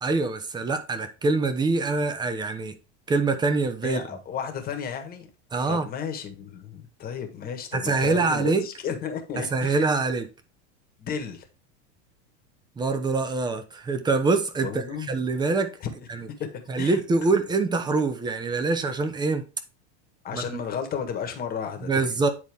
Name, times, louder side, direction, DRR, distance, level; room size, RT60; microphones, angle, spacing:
voice 1, 0.0-2.7 3.1-4.0 5.5-5.9 7.7-8.6 9.5-10.3 12.8-15.7 16.1-16.3 16.7-19.5 20.3-20.4 21.8-22.3, right 3 dB, 15° right, 0.8 m, -24 dB
voice 2, 3.8-5.3 5.7-9.8 11.0-11.5 14.6-15.2 15.8-15.9 16.4-17.0 20.2-22.1, left 7 dB, 25° left, 1.5 m, -33 dB
9.6 x 4.1 x 3.5 m
supercardioid pair, 145°, 33 cm